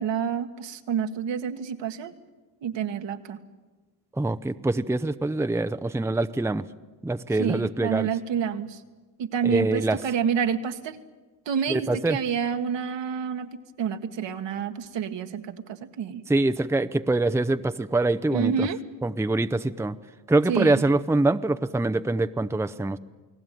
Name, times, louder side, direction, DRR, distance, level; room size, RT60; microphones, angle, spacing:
voice 1, 0.0-2.1 2.6-3.4 7.4-8.8 9.2-11.0 11.5-16.2 18.3-18.8 20.5-20.8, right 7 dB, 65° right, 6 dB, 1.8 m, -28 dB
voice 2, 4.2-6.6 7.0-8.1 9.4-10.0 11.7-12.2 16.3-18.7 19.0-20.0 20.3-23.0, right 2 dB, 5° right, 10 dB, 0.8 m, -24 dB
29.0 x 18.5 x 9.3 m, 1.2 s
supercardioid pair, 65°, 46 cm